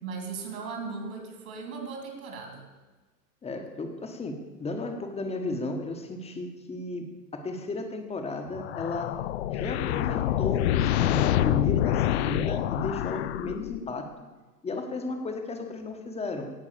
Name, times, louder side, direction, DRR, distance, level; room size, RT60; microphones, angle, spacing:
voice 1, 0.0-2.7, right 4 dB, 55° right, 4 dB, 3.1 m, -37 dB
voice 2, 3.4-9.2 9.5-14.1 14.6-16.5, left 2 dB, 10° left, 5 dB, 1.2 m, -34 dB
sound 1, 8.5-14.0, left 12 dB, 40° left, 0.5 m, -27 dB
17.0 x 6.0 x 6.7 m, 1.3 s
figure-of-eight pair, 95°, 49 cm